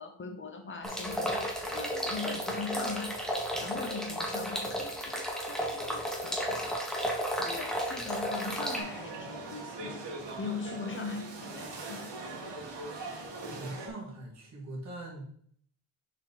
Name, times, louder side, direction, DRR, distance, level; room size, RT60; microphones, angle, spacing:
voice 1, 0.0-3.2 3.6-6.9 7.4-10.0 10.4-12.1, left 4 dB, 25° left, 4 dB, 0.9 m, -40 dB
sound 1, 0.8-8.8, equal, ahead, 1.0 m, -33 dB
sound 2, 8.4-13.9, right 3 dB, 55° right, 1.8 m, -41 dB
voice 2, 13.5-15.4, right 2 dB, 35° right, -2 dB, 2.0 m, -42 dB
6.4 x 4.7 x 4.0 m, 0.62 s
cardioid pair, 155°, 49 cm